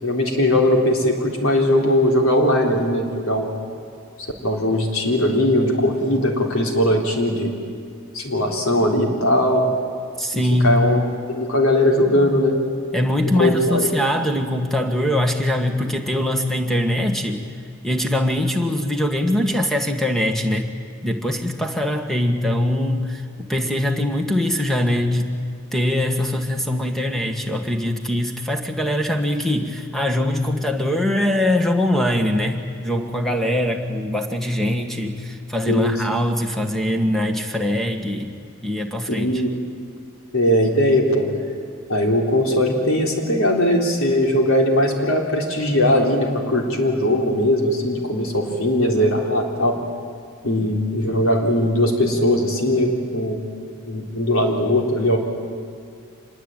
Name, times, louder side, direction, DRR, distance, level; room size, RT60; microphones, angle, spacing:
voice 1, 0.0-3.6 4.4-7.5 8.1-9.7 10.3-12.5 13.2-14.0 35.6-36.0 39.1-39.5 40.3-41.3 41.9-49.8 50.4-53.4 53.9-55.2, left 1 dB, 80° left, 1 dB, 3.7 m, -19 dB
voice 2, 10.2-10.8 12.9-17.4 17.8-20.7 21.0-25.4 25.7-38.3 38.6-39.3, left 1 dB, ahead, 4 dB, 1.8 m, -22 dB
26.0 x 21.0 x 9.2 m, 2.2 s
head